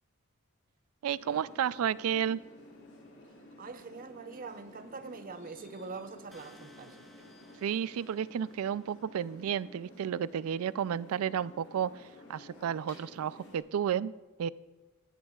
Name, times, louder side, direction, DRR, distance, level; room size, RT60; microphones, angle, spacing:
voice 1, 1.0-2.4 7.6-14.1 14.4-14.5, right 8 dB, 80° right, 0.3 m, -32 dB
sound 1, 1.2-13.6, left 1 dB, 60° left, 4.4 m, -53 dB
voice 2, 3.6-7.0, right 4 dB, 40° right, 0.6 m, -44 dB
sound 2, 6.3-9.2, equal, ahead, 1.4 m, -60 dB
18.0 x 14.5 x 2.4 m
head